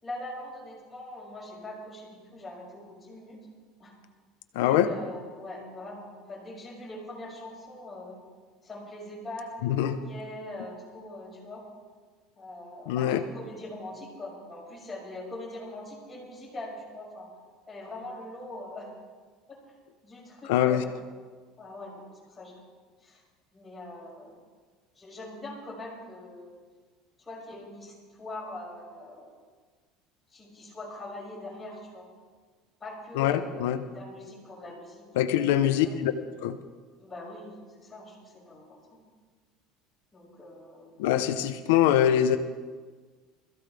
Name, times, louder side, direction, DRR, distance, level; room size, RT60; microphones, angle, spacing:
voice 1, 0.0-3.4 3.8-3.9 4.5-8.2 8.6-11.6 12.4-17.3 17.7-18.9 19.5-19.6 20.0-20.9 21.6-22.6 23.0-23.2 23.5-24.3 24.9-26.6 27.3-29.3 30.3-32.1 32.8-36.0 37.0-39.0 40.1-40.9, left 1 dB, 10° left, -5 dB, 6.0 m, -42 dB
voice 2, 4.5-4.9 9.6-10.0 12.9-13.2 20.4-20.8 33.1-33.8 35.2-36.1 36.4-36.6 41.0-42.4, left 11 dB, 90° left, 8 dB, 0.9 m, -23 dB
21.5 x 15.0 x 3.5 m, 1.5 s
cardioid pair, 135°, 0 cm